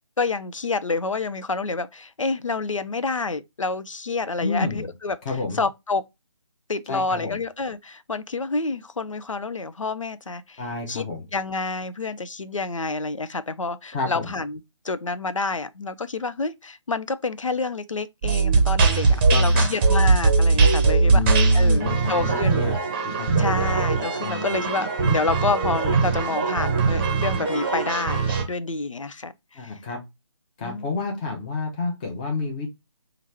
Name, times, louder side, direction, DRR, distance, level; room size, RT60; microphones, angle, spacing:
voice 1, 0.2-5.2 5.5-6.0 6.7-10.6 10.9-11.0 11.3-14.6 14.8-22.7 23.4-29.7 30.6-30.8, left 3 dB, 90° left, 0.4 m, -28 dB
voice 2, 4.4-4.9 5.2-5.6 6.9-7.4 10.6-11.2 13.9-14.3 19.3-19.7 21.0-22.7 23.0-23.4 24.2-24.6 29.5-30.0 30.6-32.7, left 4 dB, 15° left, 0.7 m, -29 dB
sound 1, 18.2-28.4, right 4 dB, 20° right, 0.7 m, -20 dB
3.0 x 2.5 x 4.3 m
figure-of-eight pair, 145°, 16 cm